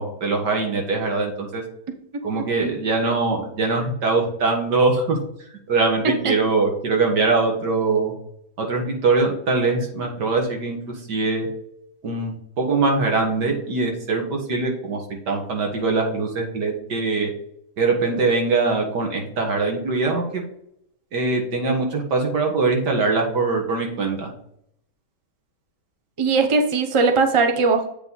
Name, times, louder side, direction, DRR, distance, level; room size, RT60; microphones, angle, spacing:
voice 1, 0.0-1.6 2.2-5.2 5.7-8.1 8.6-10.8 11.1-11.5 12.0-15.0 15.3-17.3 17.8-20.4 21.1-24.3, right 3 dB, 90° right, 1 dB, 2.3 m, -22 dB
voice 2, 26.2-27.9, right 4 dB, 25° right, 5 dB, 0.7 m, -19 dB
8.1 x 5.1 x 4.0 m, 0.72 s
omnidirectional pair, 1.8 m